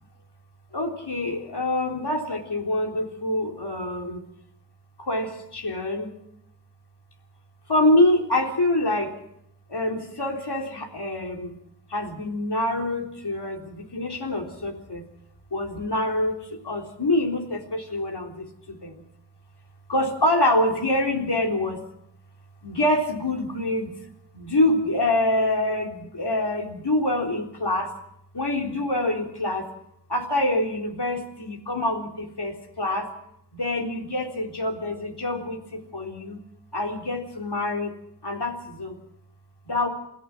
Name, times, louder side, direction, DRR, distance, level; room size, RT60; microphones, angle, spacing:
voice 1, 0.7-4.2 5.0-6.1 7.7-9.1 9.7-11.6 11.9-15.0 15.5-18.9 19.9-21.8 22.6-23.9 24.3-27.9 28.3-29.7 30.1-33.1 33.5-36.4 36.7-37.9 38.2-39.0 39.7-39.9, left 1 dB, 65° left, 2 dB, 3.8 m, -25 dB
28.0 x 17.0 x 6.2 m, 0.76 s
wide cardioid pair, 55°, 43 cm